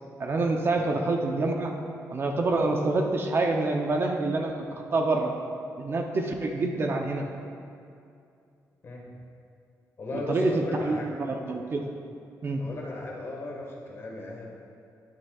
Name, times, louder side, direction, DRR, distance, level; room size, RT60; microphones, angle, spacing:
voice 1, 0.2-1.7 2.1-4.5 4.9-5.3 5.8-7.2 10.3-11.9 12.4-12.6, right 2 dB, 35° right, 3 dB, 0.6 m, -26 dB
voice 2, 10.0-11.2 12.6-14.5, left 2 dB, 40° left, -2 dB, 1.4 m, -37 dB
10.0 x 9.8 x 2.3 m, 2.5 s
wide cardioid pair, 160°, 7 cm